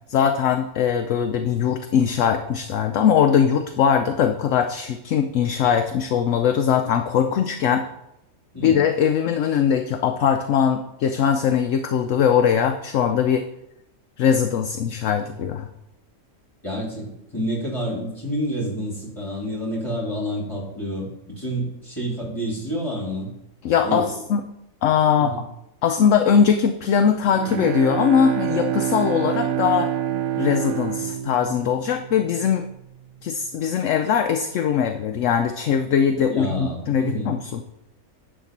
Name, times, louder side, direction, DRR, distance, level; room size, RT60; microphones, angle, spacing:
voice 1, 0.1-7.8 8.6-13.5 14.2-15.7 23.6-24.0 24.3-24.4 24.8-25.3 25.8-29.9 30.4-32.7 33.2-37.4, left 7 dB, 65° left, 6 dB, 0.9 m, -20 dB
voice 2, 16.6-23.3 23.8-24.1 25.2-25.4 36.3-37.3, equal, 20° left, -2 dB, 2.9 m, -29 dB
Bowed string instrument, 27.0-32.5, right 10 dB, 75° right, 1.1 m, -27 dB
10.5 x 3.8 x 7.2 m, 0.84 s
omnidirectional pair, 1.5 m